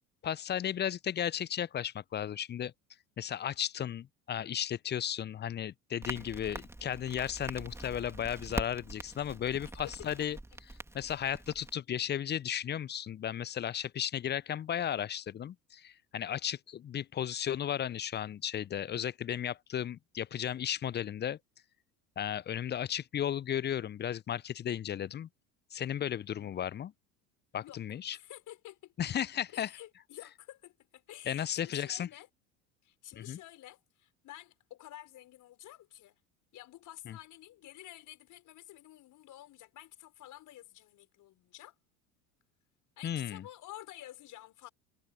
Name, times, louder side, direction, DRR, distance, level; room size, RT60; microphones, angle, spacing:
voice 1, 0.2-2.7 3.2-10.4 10.9-21.4 22.2-25.3 25.7-26.9 27.5-28.2 29.0-29.7 31.3-32.1 33.2-33.4 37.1-37.2 43.0-43.4, left 10 dB, 25° left, 0.8 m, -35 dB
Crackle, 6.0-11.7, right 1 dB, 5° right, 2.9 m, -43 dB
voice 2, 28.1-28.9 29.5-32.3 32.8-36.2 36.5-41.7 43.0-44.7, left 14 dB, 45° left, 6.0 m, -51 dB
figure-of-eight pair, 70°, 42 cm